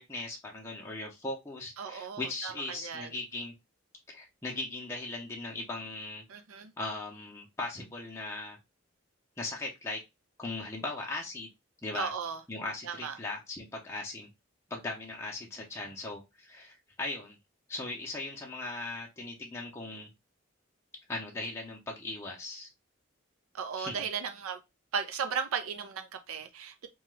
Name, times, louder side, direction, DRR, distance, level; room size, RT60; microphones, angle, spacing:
voice 1, 0.0-3.5 4.1-6.2 6.8-8.6 9.4-10.0 10.4-11.5 11.8-12.1 12.5-14.3 14.7-17.4 17.7-20.1 21.1-22.7 23.8-24.0, left 2 dB, 15° left, 0.6 m, -38 dB
voice 2, 1.8-3.1 6.3-6.7 11.9-12.4 12.8-13.1 23.5-24.6 24.9-26.9, right 6 dB, 85° right, 0.5 m, -36 dB
2.8 x 2.3 x 3.1 m
head